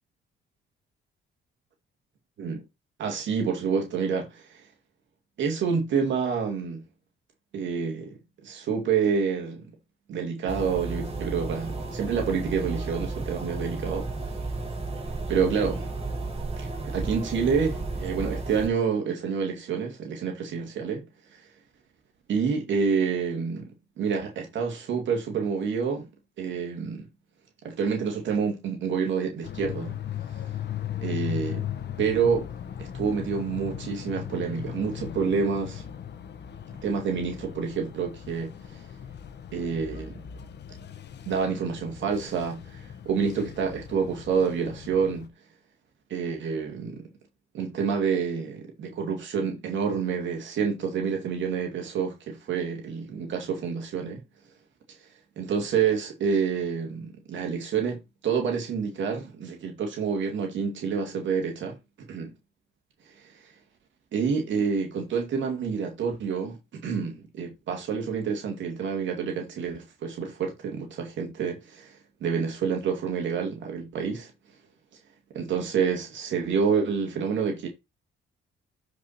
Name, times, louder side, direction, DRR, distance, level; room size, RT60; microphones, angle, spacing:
voice 1, 3.0-4.7 5.4-6.8 7.5-9.7 10.1-14.1 15.3-15.9 16.6-21.0 21.3-21.4 22.3-23.7 24.0-26.1 26.4-27.1 27.6-30.0 31.0-31.7 32.0-32.5 32.8-35.8 36.8-38.9 39.5-40.2 41.3-45.3 46.1-47.0 47.5-54.2 54.9-55.0 55.4-62.3 63.1-63.5 64.1-74.3 75.3-77.7, right 6 dB, 70° right, 2.5 m, -28 dB
sound 1, 10.5-18.7, right 3 dB, 30° right, 4.2 m, -33 dB
sound 2, 29.4-45.3, left 10 dB, 60° left, 1.4 m, -38 dB
12.0 x 5.2 x 4.3 m
cardioid pair, 90°, 20 cm